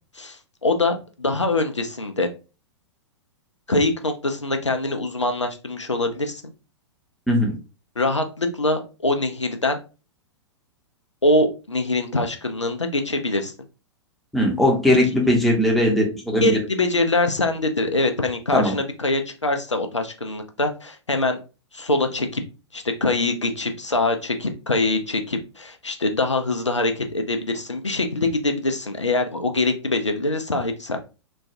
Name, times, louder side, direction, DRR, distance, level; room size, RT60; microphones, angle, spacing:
voice 1, 0.2-2.3 3.7-6.4 8.0-9.8 11.2-13.5 16.4-21.4 21.7-22.4 22.7-31.0, left 2 dB, 90° left, 5 dB, 0.4 m, -23 dB
voice 2, 14.3-16.6 18.5-18.8, left 1 dB, ahead, -2 dB, 0.7 m, -19 dB
3.1 x 2.3 x 2.5 m, 0.32 s
figure-of-eight pair, 105°, 15 cm